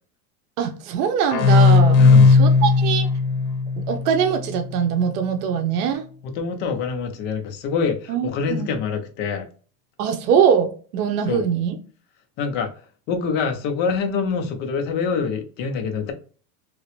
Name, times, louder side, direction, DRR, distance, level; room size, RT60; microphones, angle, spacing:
voice 1, 0.6-2.0 2.3-3.1 3.9-6.0 8.1-8.8 10.0-11.8, right 7 dB, 70° right, 0.8 m, -22 dB
sound 1, 1.3-4.8, left 4 dB, 75° left, 0.9 m, -16 dB
voice 2, 2.0-2.4 6.3-9.5 11.3-11.4 12.4-12.7 13.1-16.1, left 5 dB, 25° left, 0.4 m, -25 dB
3.0 x 2.8 x 3.1 m
supercardioid pair, 145°, 48 cm